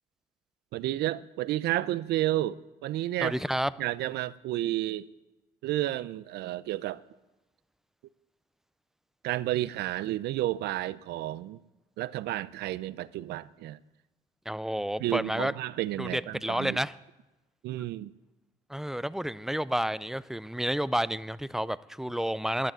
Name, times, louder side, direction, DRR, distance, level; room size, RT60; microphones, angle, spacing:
voice 1, 0.7-3.4 3.8-5.0 5.6-7.0 9.2-11.6 12.0-13.8 15.0-16.8 17.6-18.1, right 15 dB, 75° right, 0.6 m, -31 dB
voice 2, 3.2-3.7 14.5-15.5 16.0-16.9 18.7-22.7, equal, ahead, 0.4 m, -30 dB
12.0 x 11.5 x 9.2 m
cardioid pair, 110°, 17 cm